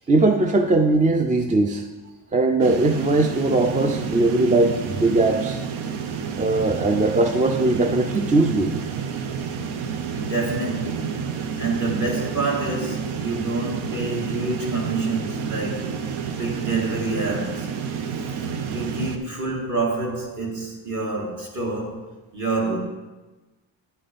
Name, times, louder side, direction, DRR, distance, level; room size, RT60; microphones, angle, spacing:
voice 1, 0.1-1.9 2.3-5.6 6.4-8.7, right 2 dB, 20° right, 0.3 m, -20 dB
sound 1, 2.6-19.2, right 6 dB, 90° right, 0.8 m, -30 dB
voice 2, 10.3-11.3 11.6-16.0 16.3-17.7 18.4-22.8, right 3 dB, 40° right, 2.0 m, -27 dB
10.0 x 4.2 x 5.1 m
cardioid pair, 125°, 47 cm